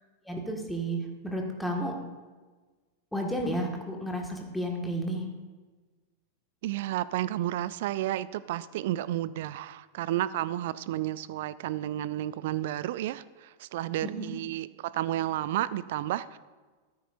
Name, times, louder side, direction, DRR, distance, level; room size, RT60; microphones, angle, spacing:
voice 1, 0.3-2.0 3.1-5.2 14.0-14.3, right 1 dB, ahead, 0 dB, 1.8 m, -32 dB
voice 2, 6.6-16.4, right 13 dB, 55° right, 17 dB, 0.4 m, -31 dB
14.5 x 13.0 x 2.6 m, 1.3 s
figure-of-eight pair, 90°, 0 cm